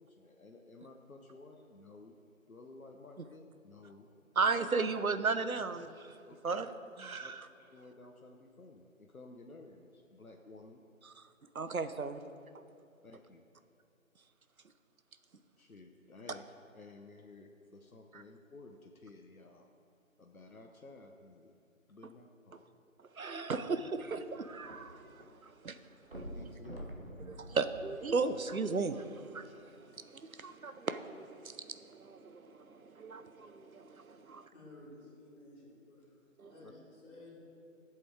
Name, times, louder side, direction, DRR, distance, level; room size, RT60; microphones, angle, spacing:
voice 1, 0.0-2.1 2.5-4.1 4.4-4.6 6.3-6.7 7.2-7.3 7.7-10.8 13.0-13.5 15.6-16.4 16.7-19.7 20.2-21.5 21.9-22.7 26.3-26.9 36.6-36.7, left 3 dB, 90° left, 1.0 m, -54 dB
voice 2, 4.4-6.2 6.4-6.7 7.0-7.5 11.0-11.3 11.5-12.2 12.5-12.6 18.1-18.2 23.1-25.8 26.2-26.3 27.3-34.5 36.4-36.5, right 4 dB, 85° right, 0.9 m, -36 dB
sound 1, 23.8-25.3 25.5-25.6 26.0-28.6 29.3-29.4, right 1 dB, 45° right, 1.5 m, -47 dB
voice 3, 34.5-36.2 36.5-37.3, left 2 dB, 10° left, 2.1 m, -54 dB
12.5 x 7.8 x 4.8 m
figure-of-eight pair, 165°, 41 cm